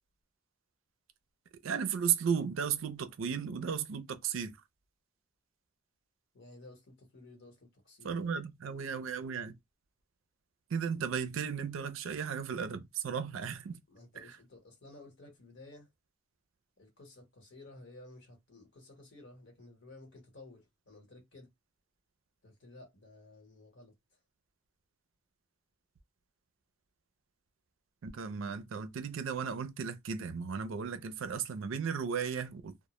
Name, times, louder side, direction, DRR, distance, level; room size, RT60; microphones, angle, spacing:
voice 1, 1.6-4.5 8.0-9.5 10.7-13.8 14.2-14.4 28.0-32.7, right 7 dB, 75° right, 0.4 m, -35 dB
voice 2, 6.3-8.1 13.9-15.9 16.8-21.5 22.4-23.9, left 2 dB, 65° left, 1.1 m, -54 dB
2.0 x 2.0 x 2.9 m
head